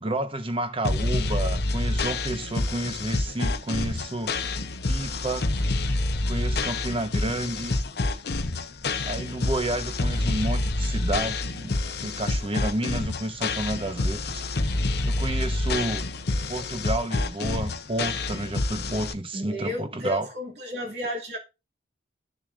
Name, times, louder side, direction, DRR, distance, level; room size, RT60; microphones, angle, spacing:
voice 1, 0.0-4.3 4.9-5.5 6.3-7.8 9.0-16.1 16.5-20.3, right 1 dB, 30° right, 1.0 m, -30 dB
sound 1, 0.8-19.1, left 2 dB, 60° left, 0.9 m, -27 dB
voice 2, 19.3-21.4, left 1 dB, 60° right, 2.8 m, -32 dB
12.5 x 6.8 x 2.5 m
head